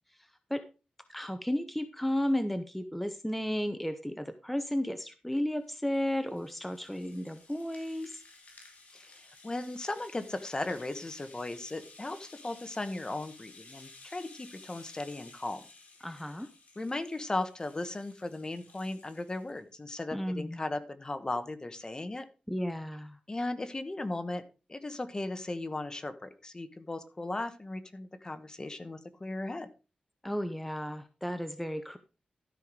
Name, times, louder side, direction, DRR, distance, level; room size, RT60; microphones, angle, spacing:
voice 1, 0.2-0.6 1.1-8.2 16.0-16.5 20.1-20.6 22.5-23.2 30.2-32.0, equal, 5° left, 9 dB, 0.8 m, -33 dB
Rattle (instrument), 5.4-19.6, left 3 dB, 60° left, 4.0 m, -55 dB
voice 2, 8.9-15.6 16.8-22.3 23.3-24.4 24.7-29.7, left 2 dB, 30° left, 10 dB, 1.2 m, -37 dB
13.0 x 5.7 x 4.9 m, 0.32 s
wide cardioid pair, 100°, 3 cm